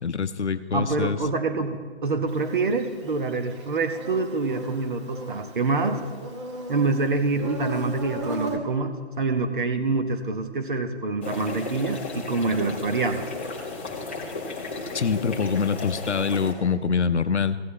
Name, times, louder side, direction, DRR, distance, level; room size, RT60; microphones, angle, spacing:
voice 1, 0.0-1.2 14.9-17.6, left 6 dB, 85° left, 13 dB, 0.7 m, -25 dB
voice 2, 0.7-6.0 6.7-13.3, right 3 dB, 45° right, 6 dB, 1.0 m, -26 dB
Insect, 2.3-8.6, right 1 dB, 25° right, 1.0 m, -36 dB
sound 1, 11.2-16.5, left 3 dB, 10° left, 0.5 m, -34 dB
15.5 x 9.4 x 3.2 m, 1.5 s
figure-of-eight pair, 150°, 34 cm